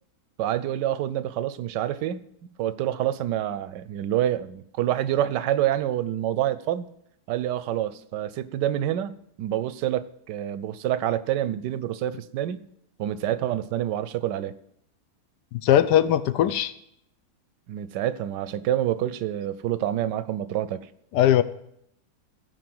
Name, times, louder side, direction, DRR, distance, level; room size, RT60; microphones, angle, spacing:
voice 1, 0.4-2.3 2.6-6.9 7.3-12.7 13.0-14.5 17.7-20.9, right 12 dB, 90° right, 1.3 m, -27 dB
voice 2, 15.6-16.7 21.1-21.4, left 11 dB, 80° left, 1.2 m, -19 dB
15.5 x 5.3 x 7.8 m
omnidirectional pair, 1.8 m